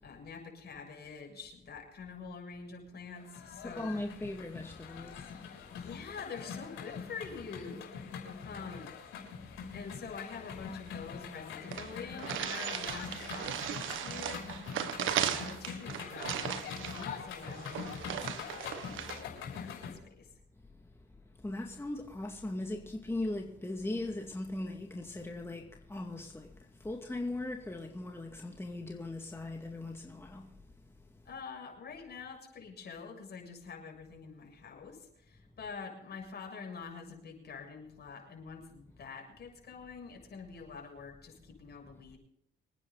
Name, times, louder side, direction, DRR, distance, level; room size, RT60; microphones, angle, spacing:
voice 1, 0.0-3.9 5.7-7.9 8.4-8.9 9.7-20.3 31.3-42.2, left 5 dB, 55° left, 7.1 m, -46 dB
sound 1, 3.2-19.9, left 6 dB, 90° left, 6.1 m, -44 dB
voice 2, 3.6-5.3 21.4-26.5 26.8-30.5, left 2 dB, 10° left, 2.2 m, -39 dB
sound 2, 11.0-11.1 11.3-11.4 11.7-19.2, right 10 dB, 80° right, 1.5 m, -37 dB
26.0 x 9.9 x 4.1 m
cardioid pair, 90°, 20 cm